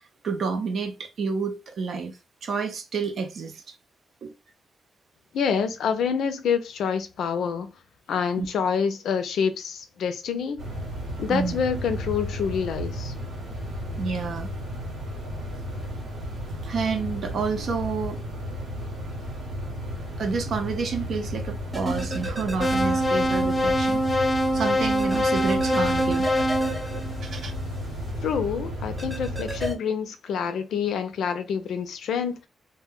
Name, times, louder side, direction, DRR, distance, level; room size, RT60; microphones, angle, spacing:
voice 1, 0.2-3.6 4.2-4.3 8.4-8.5 11.3-11.6 14.0-14.5 16.6-18.2 20.2-26.3 27.2-27.5, right 5 dB, 65° right, 0.5 m, -29 dB
voice 2, 5.3-7.7 8.1-10.6 11.2-13.1 28.2-32.5, left 6 dB, 90° left, 0.4 m, -27 dB
sound 1, 10.6-29.7, equal, 85° right, 1.1 m, -33 dB
sound 2, 21.7-23.4 23.7-23.8 25.0-27.8 29.0-29.7, right 2 dB, 15° right, 0.6 m, -35 dB
sound 3, 22.6-27.7, equal, 40° left, 0.5 m, -24 dB
2.1 x 2.1 x 3.6 m
wide cardioid pair, 130°, 0 cm